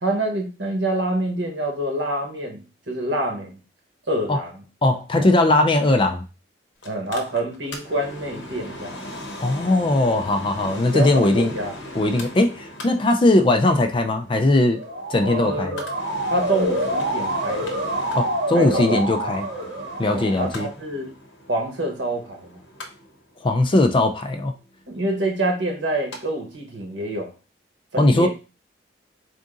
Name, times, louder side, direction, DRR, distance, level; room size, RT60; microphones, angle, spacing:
voice 1, 0.0-3.6 4.1-4.6 5.1-5.3 6.8-9.0 10.6-11.7 15.2-15.8 16.3-17.7 18.5-19.4 20.1-21.1 21.5-22.6 24.9-27.3 27.9-28.3, right 1 dB, 80° right, 2 dB, 1.2 m, -27 dB
voice 2, 4.8-6.2 9.4-11.5 11.9-14.8 15.1-15.8 18.1-19.5 20.0-20.7 23.4-24.5 28.0-28.3, left 2 dB, 30° left, 6 dB, 0.4 m, -19 dB
Mechanical fan, 6.8-26.2 26.5-26.6, left 1 dB, 85° left, 0.8 m, -39 dB
Motor vehicle (road) / Siren, 14.7-20.5, right 1 dB, 55° right, 0.9 m, -27 dB
3.6 x 2.6 x 3.8 m, 0.32 s
head